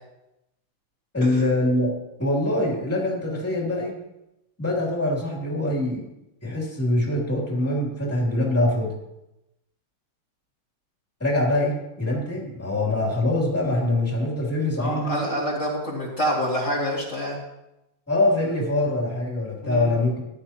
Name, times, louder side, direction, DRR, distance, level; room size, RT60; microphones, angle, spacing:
voice 1, 1.1-1.9 2.2-3.9 4.6-6.0 6.4-8.9 11.2-15.2 18.1-20.2, left 1 dB, 5° left, -3 dB, 2.8 m, -24 dB
voice 2, 14.8-17.4 19.6-19.9, equal, 40° left, -7 dB, 2.5 m, -27 dB
15.5 x 11.0 x 2.9 m, 0.90 s
omnidirectional pair, 2.2 m